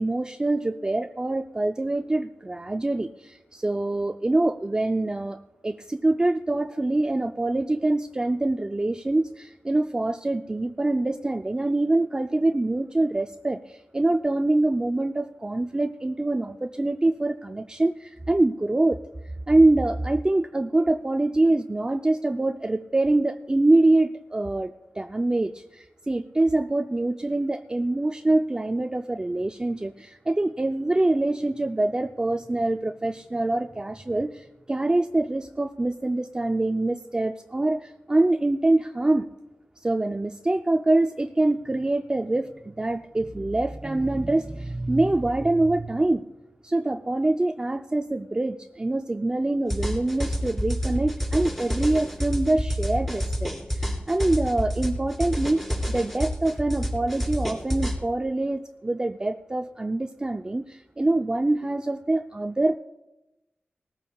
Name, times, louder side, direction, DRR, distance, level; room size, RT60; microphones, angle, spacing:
voice 1, 0.0-5.4 5.6-19.0 19.5-39.3 39.8-46.2 46.6-55.6 55.9-62.8, right 2 dB, 20° right, 6 dB, 0.4 m, -25 dB
sound 1, 49.7-58.0, equal, 5° left, 2.9 m, -28 dB
19.0 x 14.0 x 2.3 m, 0.94 s
wide cardioid pair, 80°, 4 cm